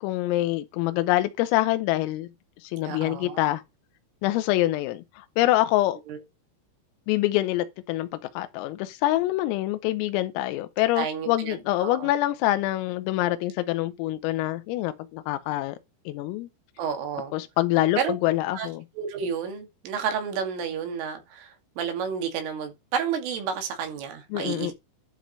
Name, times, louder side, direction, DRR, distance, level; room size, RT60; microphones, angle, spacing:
voice 1, 0.0-2.3 2.6-3.6 4.2-6.0 7.1-8.1 8.4-15.8 16.1-16.5 17.3-18.8 24.3-24.7, left 16 dB, 90° left, 3.5 m, -25 dB
voice 2, 2.8-3.4 6.1-6.2 11.0-12.1 16.8-17.3 18.0-18.1 18.5-18.7 19.0-24.7, right 7 dB, 75° right, 4.9 m, -31 dB
12.0 x 5.1 x 5.4 m
omnidirectional pair, 5.9 m